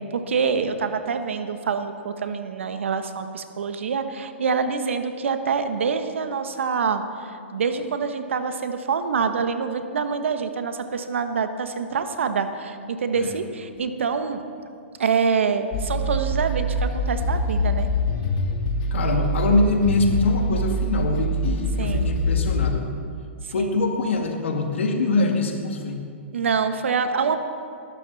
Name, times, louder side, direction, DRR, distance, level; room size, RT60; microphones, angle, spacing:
voice 1, 0.1-14.4 15.0-17.9 21.8-22.1 23.6-23.7 26.3-27.4, right 5 dB, 75° right, 8 dB, 1.2 m, -26 dB
sound 1, 15.7-22.7, equal, 40° left, 1.9 m, -24 dB
voice 2, 18.9-22.8 23.5-26.0, left 3 dB, 70° left, 3 dB, 2.1 m, -23 dB
19.5 x 12.0 x 4.1 m, 2.4 s
hypercardioid pair, 125°, 7 cm